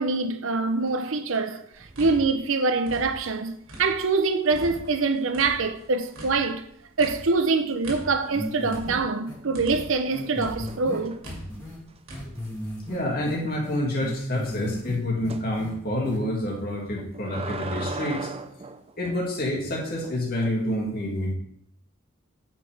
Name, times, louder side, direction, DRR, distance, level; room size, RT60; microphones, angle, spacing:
voice 1, 0.0-1.7 2.0-6.7 7.0-11.1, right 3 dB, 70° right, 0.7 m, -24 dB
sound 1, 0.9-1.5 1.8-2.1 4.5-5.0 8.1-8.6 9.1-11.4 11.9-12.0 12.4-12.5 12.8-12.9 15.3-15.5 16.8-19.3 20.0-20.5, right 3 dB, 30° right, 0.5 m, -39 dB
sound 2, 1.7-4.2 4.5-10.1 10.4-12.3, equal, 85° right, 2.3 m, -42 dB
sound 3, 8.3-9.0 9.3-9.4 9.7-9.8 10.1-11.8 12.1-13.0 13.3-15.0 15.2-15.7 16.0-16.2, equal, 15° left, 2.5 m, -35 dB
voice 2, 12.9-18.3 19.0-21.3, left 1 dB, 45° left, 2.3 m, -28 dB
9.3 x 5.9 x 3.5 m
head